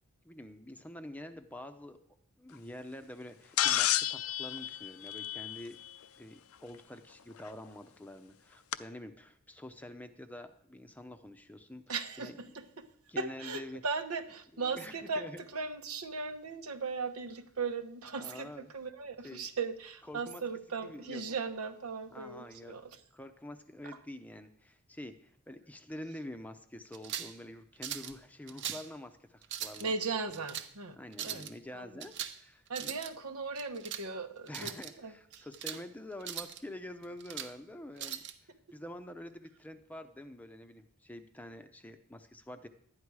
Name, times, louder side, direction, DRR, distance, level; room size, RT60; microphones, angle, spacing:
voice 1, 0.2-2.0 2.4-5.8 6.2-12.4 13.1-13.8 14.5-15.4 18.2-18.7 19.2-19.5 20.1-20.4 20.8-21.2 22.1-22.7 23.1-29.9 31.0-32.9 34.5-42.7, left 1 dB, 5° left, 8 dB, 0.6 m, -47 dB
sound 1, 3.6-5.9 7.5-7.6 8.7-8.8, left 12 dB, 75° left, 0.5 m, -31 dB
voice 2, 11.9-12.9 13.2-23.0 29.8-31.0 31.2-32.0 32.7-35.5 38.0-38.2, right 4 dB, 85° right, 8 dB, 1.1 m, -38 dB
sound 2, 26.9-27.4 27.8-28.1 28.5-28.9 29.4-29.8 30.3-30.7 31.1-31.5 32.0-32.4 32.7-33.1 33.6-34.0 34.5-34.9 35.3-35.8 36.2-36.6 37.0-37.5 38.0-38.3, right 10 dB, 55° right, 0.7 m, -40 dB
12.0 x 9.9 x 4.7 m, 0.63 s
head